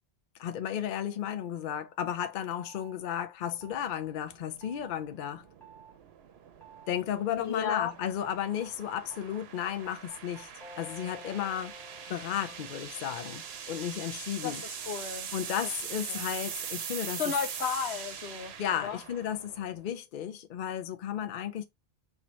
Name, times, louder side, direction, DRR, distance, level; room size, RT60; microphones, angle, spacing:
voice 1, 0.4-5.4 6.9-10.5 10.8-11.7 12.1-13.4 13.7-14.6 15.3-17.2 18.6-21.6, left 10 dB, 55° left, 0.7 m, -34 dB
sound 1, 2.6-3.0 3.6-4.0 4.6-5.0 5.6-5.9 6.6-7.0 7.6-8.0 8.6-13.7, right 1 dB, ahead, 0.9 m, -52 dB
sound 2, 3.6-19.9, right 7 dB, 70° right, 0.9 m, -42 dB
voice 2, 7.4-7.9 14.4-15.3 16.1-16.3 17.2-18.5 18.8-19.0, left 7 dB, 80° left, 1.0 m, -33 dB
4.4 x 2.9 x 3.1 m
omnidirectional pair, 1.1 m